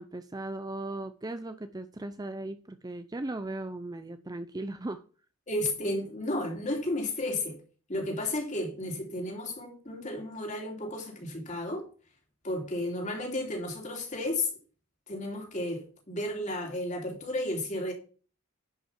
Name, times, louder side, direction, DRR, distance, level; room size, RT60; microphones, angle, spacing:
voice 1, 0.0-5.0, right 2 dB, 15° right, 0.5 m, -37 dB
voice 2, 5.5-7.6 7.9-11.8 12.4-14.5 15.1-17.9, left 1 dB, 35° left, 3.2 m, -33 dB
11.0 x 5.6 x 5.8 m
head